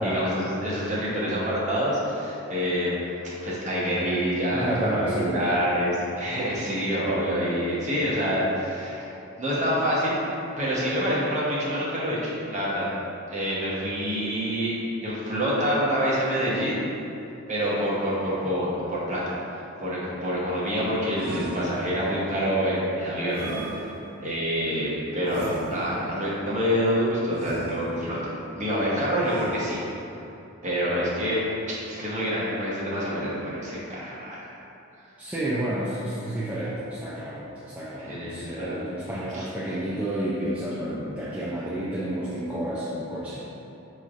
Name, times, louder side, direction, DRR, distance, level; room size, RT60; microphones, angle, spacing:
voice 1, 0.0-3.0 3.4-9.1 9.4-10.2 10.6-12.9 13.3-14.7 15.0-16.8 17.5-23.9 24.2-28.3 28.6-29.8 30.6-34.4 38.0-38.9 39.3-39.5, equal, 35° right, -7 dB, 0.9 m, -27 dB
voice 2, 4.5-5.7 6.3-6.5 35.2-43.4, right 1 dB, 5° right, -9 dB, 0.3 m, -30 dB
sound 1, 21.2-22.2 23.3-24.4 25.2-26.2 27.3-28.2 29.2-30.2, right 1 dB, 85° right, 0.5 m, -36 dB
5.1 x 3.1 x 2.4 m, 2.9 s
head